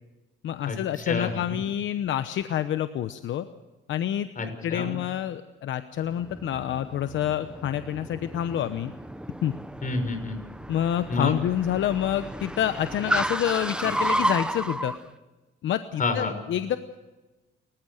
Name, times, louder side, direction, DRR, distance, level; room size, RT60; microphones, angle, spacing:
voice 1, 0.4-3.5 3.9-4.3 4.6-8.9 9.4-9.5 10.7-14.9 15.6-16.8, left 10 dB, 75° left, 11 dB, 0.9 m, -27 dB
voice 2, 1.1-1.4 4.4-4.9 9.8-10.4 11.1-11.3 16.0-16.3, left 3 dB, 40° left, 7 dB, 6.2 m, -28 dB
Car, 6.0-15.0, right 1 dB, 5° right, 1.0 m, -32 dB
30.0 x 15.0 x 6.6 m, 1.2 s
cardioid pair, 90°, 20 cm